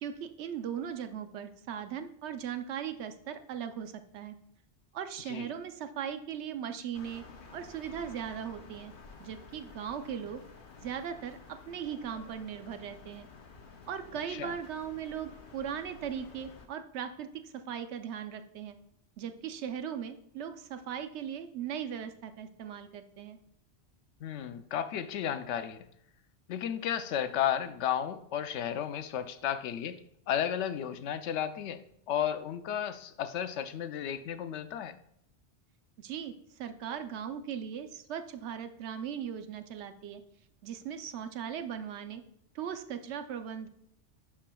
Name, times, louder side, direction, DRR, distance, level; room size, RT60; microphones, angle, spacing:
voice 1, 0.0-4.4 4.9-7.2 7.5-8.9 9.2-10.4 10.8-11.4 11.7-13.3 13.9-18.8 19.2-23.4 36.0-40.2 40.6-42.2 42.5-43.7, right 8 dB, 80° right, 8 dB, 0.9 m, -38 dB
sound 1, 6.9-16.7, left 4 dB, 55° left, 0.9 m, -52 dB
voice 2, 24.2-25.9 26.5-30.0 30.3-31.8 32.1-35.0, left 9 dB, 90° left, 11 dB, 0.9 m, -33 dB
11.5 x 4.9 x 2.3 m, 0.72 s
omnidirectional pair, 1.1 m